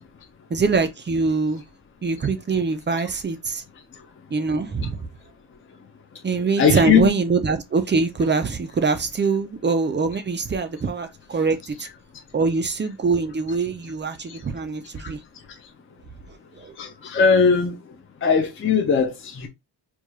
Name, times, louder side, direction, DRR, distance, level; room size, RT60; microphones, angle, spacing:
voice 1, 0.5-1.6 2.0-3.6 4.3-4.9 6.2-11.9 12.3-15.2 16.6-16.8, right 4 dB, 25° right, 0.4 m, -23 dB
voice 2, 6.6-7.1 14.3-14.4 16.8-17.8 18.2-19.5, left 6 dB, 30° left, 0.5 m, -19 dB
4.7 x 2.3 x 2.7 m
wide cardioid pair, 175°, 43 cm